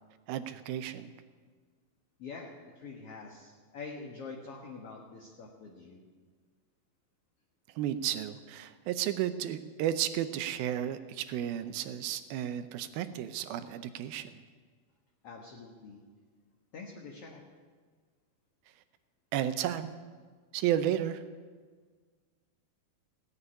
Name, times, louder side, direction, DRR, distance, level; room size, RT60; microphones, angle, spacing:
voice 1, 0.3-1.1 7.8-14.3 19.3-19.9 20.5-21.2, right 11 dB, 80° right, 11 dB, 2.5 m, -33 dB
voice 2, 2.2-6.0 15.2-16.0 16.7-17.4, left 4 dB, 55° left, 0 dB, 1.7 m, -45 dB
16.5 x 8.1 x 9.8 m, 1.5 s
omnidirectional pair, 4.4 m